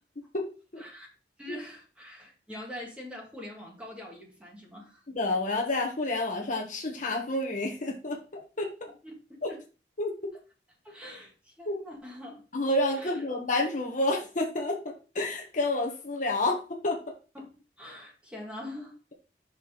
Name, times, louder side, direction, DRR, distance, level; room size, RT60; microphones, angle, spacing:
voice 1, 0.3-0.8 1.5-1.6 5.1-8.9 9.4-9.5 10.0-10.1 11.7-11.8 12.5-17.1, left 2 dB, 45° left, 0 dB, 1.3 m, -29 dB
voice 2, 1.4-5.0 9.0-9.2 9.5-9.6 10.8-12.4 13.0-13.2 17.3-17.5 17.8-19.1, left 1 dB, 5° right, -2 dB, 2.1 m, -43 dB
6.2 x 4.2 x 5.3 m, 0.34 s
head